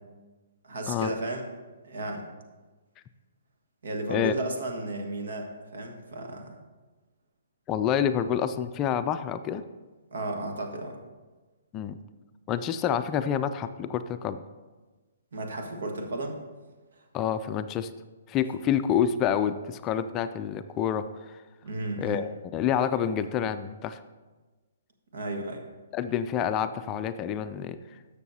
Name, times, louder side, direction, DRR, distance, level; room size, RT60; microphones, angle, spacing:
voice 1, 0.6-1.5 1.8-2.2 3.8-6.5 10.1-11.0 15.3-16.4 21.6-22.2 25.1-25.6, right 2 dB, 70° right, 3 dB, 1.5 m, -33 dB
voice 2, 7.7-9.6 11.7-12.0 12.5-14.4 17.1-17.9 18.3-21.4 22.0-24.0 25.9-27.8, left 9 dB, 25° left, 10 dB, 0.3 m, -28 dB
12.5 x 6.6 x 2.8 m, 1.3 s
hypercardioid pair, 145°, 0 cm